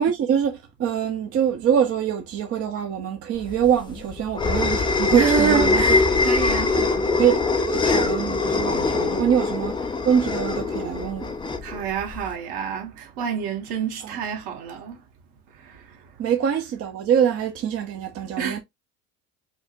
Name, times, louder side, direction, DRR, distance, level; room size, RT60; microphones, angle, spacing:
voice 1, 0.0-6.0 6.8-7.4 7.6-9.7 10.0-11.3 16.2-18.6, right 8 dB, 30° right, 0.7 m, -24 dB
sound 1, 3.5-12.3, left 3 dB, 10° left, 0.4 m, -23 dB
voice 2, 5.1-6.7 11.6-15.0 18.4-18.6, right 8 dB, 60° right, 1.4 m, -27 dB
5.0 x 2.1 x 2.5 m
hypercardioid pair, 80°, 44 cm